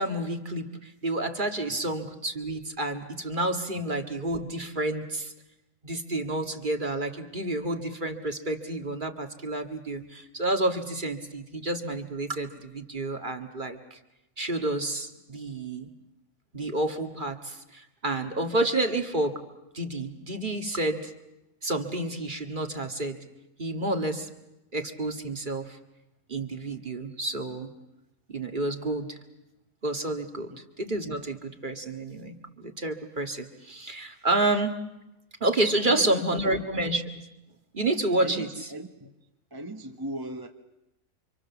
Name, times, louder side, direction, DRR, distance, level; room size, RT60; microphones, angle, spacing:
voice 1, 0.0-5.3 5.8-14.0 14.4-15.9 16.5-19.4 19.7-21.1 21.6-23.2 23.6-24.3 24.7-25.8 26.3-27.7 28.3-29.2 29.8-30.5 30.8-34.8 35.4-37.3 37.7-38.7, right 2 dB, 35° right, 5 dB, 2.1 m, -29 dB
voice 2, 35.8-36.5 38.2-39.1 39.5-40.5, right 1 dB, 15° right, 5 dB, 1.2 m, -38 dB
30.0 x 26.0 x 7.2 m, 0.92 s
omnidirectional pair, 1.4 m